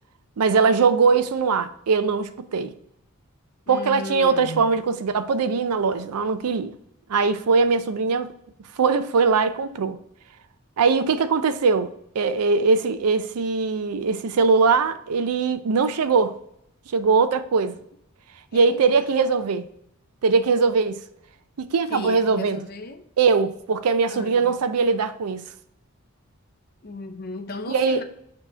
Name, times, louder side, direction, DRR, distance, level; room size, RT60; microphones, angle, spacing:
voice 1, 0.4-2.7 3.7-6.7 7.1-8.3 8.8-10.0 10.8-16.4 16.9-17.8 18.5-19.7 20.2-21.0 21.6-22.7 23.2-25.5 27.7-28.0, right 4 dB, 90° right, 0.5 m, -21 dB
voice 2, 3.7-4.8 18.5-19.1 21.9-23.1 24.1-24.6 26.8-28.0, left 2 dB, 40° left, 0.6 m, -36 dB
6.8 x 2.9 x 4.9 m
head